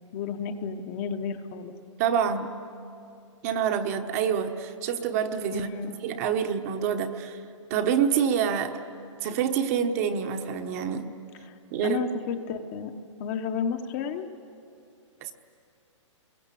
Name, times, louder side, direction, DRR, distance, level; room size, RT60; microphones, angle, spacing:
voice 1, 0.1-1.7 5.5-5.9 11.4-11.5 11.8-12.9 13.2-14.3, left 6 dB, 25° left, 7 dB, 1.0 m, -32 dB
voice 2, 2.0-2.5 3.4-7.4 7.7-8.8 9.2-11.1 11.7-12.0 15.2-15.3, right 7 dB, 30° right, 7 dB, 1.1 m, -27 dB
29.0 x 22.5 x 8.4 m, 2.5 s
hypercardioid pair, 165°, 16 cm